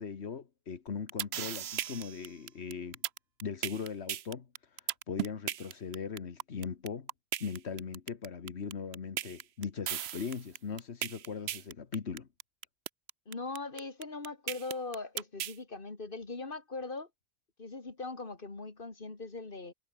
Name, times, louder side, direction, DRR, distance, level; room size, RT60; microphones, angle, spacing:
voice 1, 0.0-3.0 3.4-7.1 7.4-12.3, left 6 dB, 90° left, 1.7 m, -39 dB
sound 1, 0.9-15.6, right 11 dB, 80° right, 0.9 m, -36 dB
voice 2, 13.3-17.1 17.6-19.7, left 3 dB, 55° left, 2.8 m, -40 dB
omnidirectional pair, 1.1 m